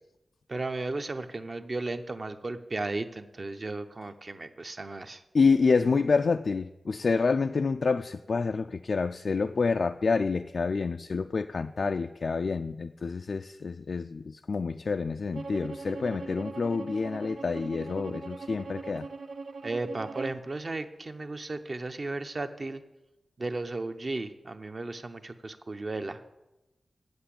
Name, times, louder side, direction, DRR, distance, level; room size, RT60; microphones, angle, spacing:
voice 1, 0.5-5.2 19.6-22.8 23.4-26.2, right 2 dB, 40° right, 8 dB, 0.7 m, -35 dB
voice 2, 5.3-19.1, left 4 dB, 60° left, 7 dB, 0.3 m, -28 dB
Bowed string instrument, 15.3-20.4, right 3 dB, 75° right, 0.7 m, -40 dB
7.9 x 7.8 x 8.5 m, 0.99 s
wide cardioid pair, 105°, 0 cm